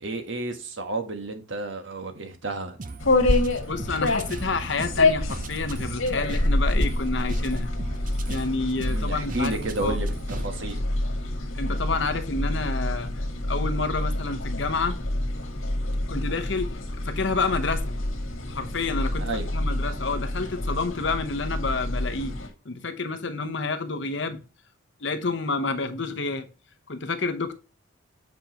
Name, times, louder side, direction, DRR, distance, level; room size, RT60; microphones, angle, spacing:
voice 1, 0.0-2.8 8.9-10.8 19.2-19.4, right 2 dB, 70° right, 1.3 m, -31 dB
sound 1, 2.8-10.8, right 3 dB, 40° right, 0.6 m, -40 dB
sound 2, 3.0-22.5, left 2 dB, 80° left, 1.9 m, -27 dB
voice 2, 3.6-7.7 8.3-10.0 11.5-13.1 13.5-15.0 16.1-16.8 17.0-17.9 18.5-24.4 25.0-26.5 26.9-27.5, left 3 dB, 60° left, 0.9 m, -29 dB
7.6 x 5.1 x 3.0 m
head